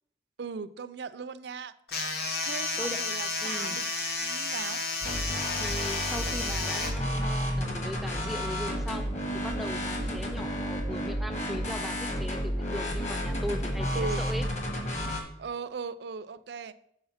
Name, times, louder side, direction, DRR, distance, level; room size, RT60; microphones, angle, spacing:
voice 1, 0.4-1.7 2.4-3.8 4.2-4.8 10.0-10.1 13.9-14.2 15.4-16.7, right 5 dB, 70° right, 14 dB, 0.4 m, -38 dB
sound 1, 1.9-6.9, left 3 dB, 60° left, 1.2 m, -32 dB
voice 2, 3.4-3.8 5.6-14.5, equal, ahead, 7 dB, 0.4 m, -39 dB
sound 2, 5.0-15.2, equal, 40° left, 1.4 m, -31 dB
6.6 x 4.7 x 5.6 m, 0.75 s
head